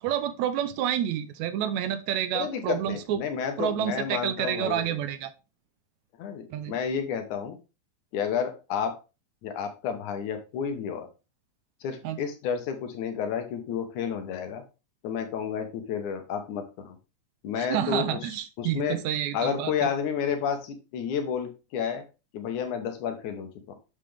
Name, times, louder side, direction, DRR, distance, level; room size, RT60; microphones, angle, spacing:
voice 1, 0.0-3.2 3.6-5.3 6.5-6.8 12.0-12.2 17.6-19.9, right 10 dB, 80° right, 1.8 m, -29 dB
voice 2, 2.3-5.0 6.2-7.6 8.1-9.0 9.4-11.1 11.8-14.6 15.0-17.0 17.4-18.3 18.6-19.0 19.3-22.0 22.3-23.8, left 7 dB, 80° left, 2.6 m, -31 dB
8.3 x 5.8 x 3.4 m
omnidirectional pair, 3.5 m